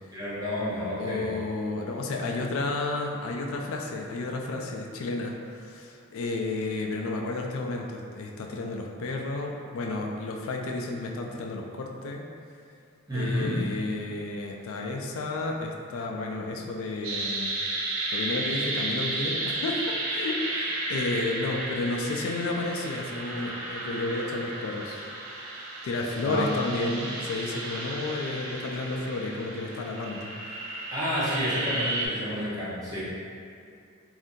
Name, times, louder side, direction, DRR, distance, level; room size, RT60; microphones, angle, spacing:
voice 1, 0.1-1.3 13.1-13.6 26.2-26.4 30.9-33.0, equal, 15° right, -11 dB, 0.8 m, -30 dB
voice 2, 1.0-12.3 13.1-17.6 18.1-25.1 25.8-30.3, left 2 dB, 75° left, 1 dB, 0.3 m, -32 dB
sound 1, 17.0-32.1, right 2 dB, 75° right, 0.5 m, -33 dB
2.6 x 2.5 x 3.6 m, 2.3 s
head